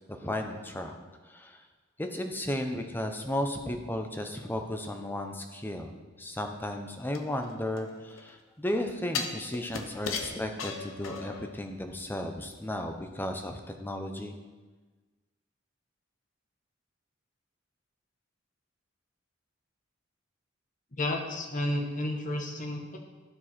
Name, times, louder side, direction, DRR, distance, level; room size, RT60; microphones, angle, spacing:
voice 1, 0.1-1.0 1.3-1.6 2.0-14.3, left 1 dB, 10° left, 4 dB, 0.6 m, -34 dB
sound 1, 7.1-8.3 9.1-11.5 11.9-12.0, left 5 dB, 85° left, 0.8 m, -36 dB
voice 2, 21.0-23.0, left 1 dB, 40° left, 2 dB, 1.1 m, -31 dB
12.5 x 4.6 x 4.3 m, 1.3 s
head